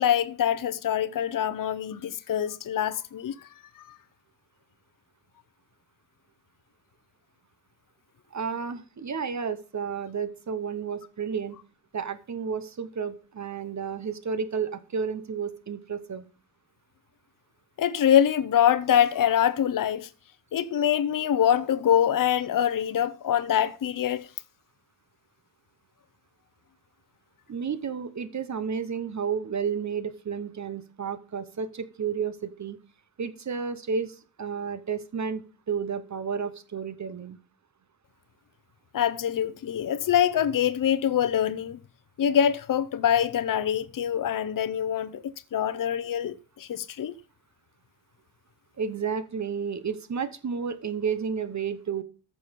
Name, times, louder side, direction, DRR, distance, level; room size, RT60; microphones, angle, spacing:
voice 1, 0.0-3.5 3.8-4.0 17.8-20.1 20.5-24.3 38.9-41.8 42.2-45.2 45.5-47.1, left 9 dB, 55° left, 0.7 m, -24 dB
voice 2, 8.3-11.6 11.9-16.3 27.5-32.8 33.2-37.4 48.8-52.0, right 6 dB, 45° right, 1.0 m, -32 dB
14.0 x 6.2 x 5.2 m
wide cardioid pair, 180°, 40 cm